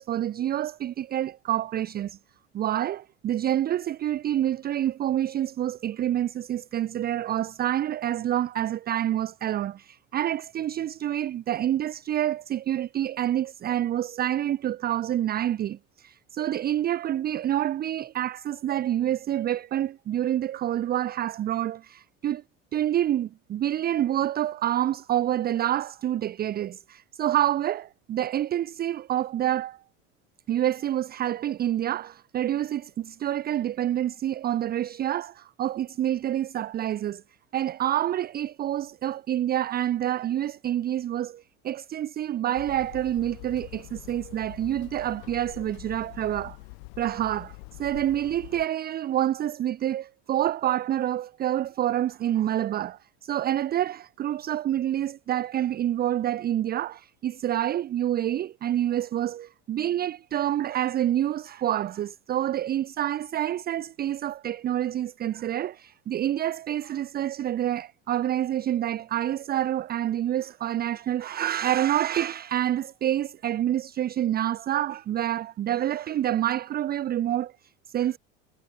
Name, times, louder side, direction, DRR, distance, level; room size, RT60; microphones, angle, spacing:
voice 1, 0.0-2.2 2.5-22.4 22.7-29.8 30.5-37.2 37.5-46.6 47.0-78.2, right 12 dB, 25° right, 0.5 m, -27 dB
Hammer, 42.6-48.7, left 36 dB, 65° left, 3.0 m, -44 dB
hypercardioid pair, 75°, 37 cm